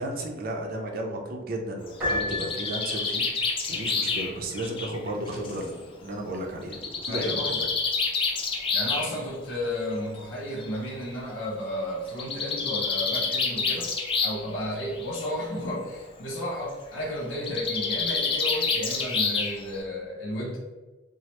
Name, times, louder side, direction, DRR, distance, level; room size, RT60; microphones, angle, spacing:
voice 1, 0.0-7.7, right 1 dB, 50° right, 2 dB, 0.5 m, -34 dB
Bird, 1.9-5.6 6.7-9.1 10.2-10.3 10.6-10.7 10.9-11.0 12.1-14.5 14.8-15.3 17.3-19.8, left 4 dB, 30° left, 0.4 m, -28 dB
Piano, 2.0-3.3, left 1 dB, 10° right, 1.1 m, -31 dB
voice 2, 7.1-7.6 8.7-13.9 14.2-20.6, left 1 dB, 70° left, -5 dB, 0.6 m, -33 dB
3.1 x 2.0 x 2.9 m, 1.2 s
head